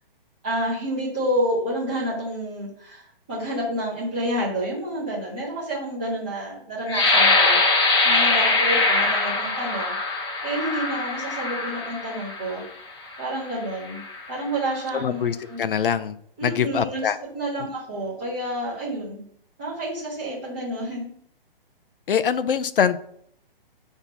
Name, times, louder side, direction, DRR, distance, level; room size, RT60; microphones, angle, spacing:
voice 1, 0.4-7.6 8.0-9.9 10.4-12.6 13.2-14.0 14.3-15.6 16.4-17.1 17.3-19.3 19.6-21.1, right 1 dB, 10° right, -9 dB, 0.7 m, -29 dB
sound 1, 6.9-12.5 13.2-13.4 13.8-14.3, left 3 dB, 30° left, 1.1 m, -22 dB
voice 2, 14.9-16.1 16.4-17.2 22.1-23.0, left 8 dB, 65° left, 12 dB, 0.6 m, -23 dB
5.5 x 3.5 x 5.8 m, 0.66 s
hypercardioid pair, 175°, 29 cm